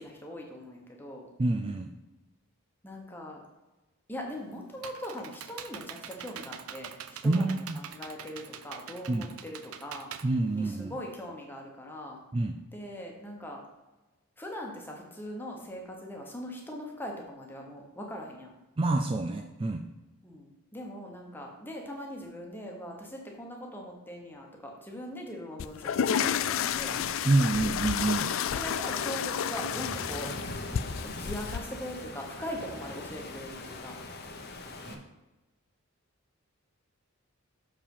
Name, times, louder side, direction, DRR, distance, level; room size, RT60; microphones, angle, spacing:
voice 1, 0.0-1.3 2.8-3.4 4.1-10.1 10.5-12.2 12.7-13.6 14.4-18.5 20.2-27.0 28.5-30.3 31.0-34.0, equal, 10° left, 0 dB, 1.2 m, -41 dB
voice 2, 1.4-1.9 7.2-7.8 9.1-9.3 10.2-10.9 12.3-12.6 18.8-19.8 27.2-28.3 34.9-35.0, right 2 dB, 25° right, 5 dB, 0.3 m, -27 dB
Computer keyboard, 4.3-11.2, right 8 dB, 80° right, 0.5 m, -44 dB
sound 1, 25.6-31.6, left 8 dB, 65° left, 0.3 m, -31 dB
Waves surf, 26.2-34.9, left 2 dB, 45° left, 0.9 m, -41 dB
6.7 x 5.0 x 5.5 m, 1.1 s
head